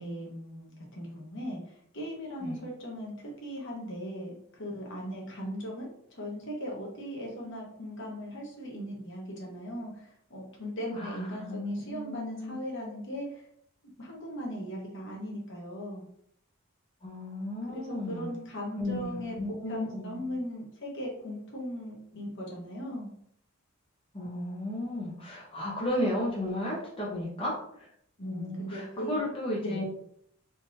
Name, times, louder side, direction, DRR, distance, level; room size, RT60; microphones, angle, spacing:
voice 1, 0.0-13.4 14.0-16.0 17.7-23.1 28.2-29.2 29.6-29.8, equal, 60° left, -2 dB, 1.1 m, -38 dB
voice 2, 10.9-12.6 17.0-18.3 18.8-20.2 24.1-27.9 28.2-29.8, left 1 dB, 25° left, -5 dB, 0.9 m, -34 dB
3.7 x 2.9 x 2.7 m, 0.68 s
head